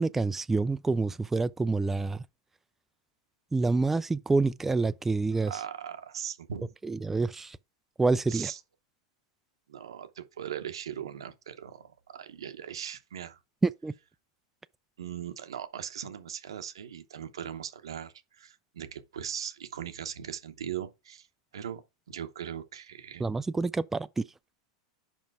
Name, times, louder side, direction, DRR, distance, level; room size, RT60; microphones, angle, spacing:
voice 1, 0.0-2.2 3.5-5.5 6.8-7.6 8.0-8.5 13.6-13.9 23.2-24.3, right 3 dB, 10° right, 0.3 m, -27 dB
voice 2, 5.5-6.7 8.3-8.6 9.7-13.4 15.0-21.3 21.5-23.3, right 9 dB, 85° right, 0.8 m, -39 dB
5.3 x 5.3 x 4.7 m
hypercardioid pair, 105°, 3 cm